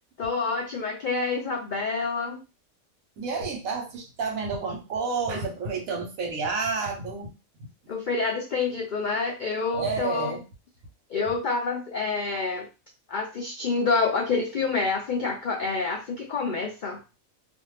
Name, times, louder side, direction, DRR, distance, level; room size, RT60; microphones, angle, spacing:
voice 1, 0.2-2.4 7.9-10.4 11.1-12.7 13.1-17.0, left 4 dB, 80° left, 1 dB, 0.4 m, -27 dB
voice 2, 3.2-7.4 9.7-10.4, right 4 dB, 80° right, 2 dB, 1.2 m, -30 dB
2.5 x 2.4 x 3.1 m, 0.29 s
omnidirectional pair, 1.4 m